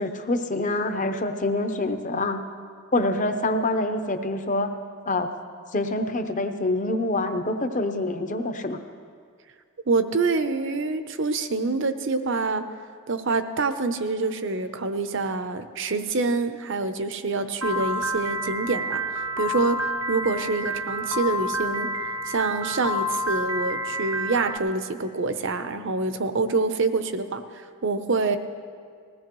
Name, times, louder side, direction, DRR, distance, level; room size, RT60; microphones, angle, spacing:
voice 1, 0.0-2.4 2.9-4.7 5.1-5.3 5.7-8.8, left 2 dB, 35° left, 7 dB, 0.8 m, -26 dB
voice 2, 9.9-12.6 13.1-19.0 19.4-21.9 22.3-28.4, right 3 dB, 60° right, 9 dB, 0.8 m, -26 dB
Piano, 17.6-24.6, equal, 75° right, 1.2 m, -29 dB
20.5 x 17.0 x 3.1 m, 2.1 s
head